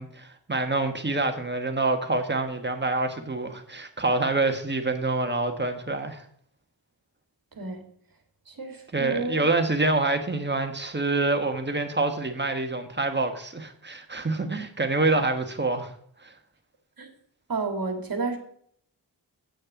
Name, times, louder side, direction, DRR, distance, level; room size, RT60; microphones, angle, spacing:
voice 1, 0.0-6.2 8.9-15.9 16.2-16.3, right 2 dB, 25° right, 1.3 m, -26 dB
voice 2, 8.5-9.4 17.0-17.1 17.5-18.4, right 3 dB, 50° right, 1.9 m, -30 dB
8.9 x 6.5 x 5.8 m
wide cardioid pair, 105°, 43 cm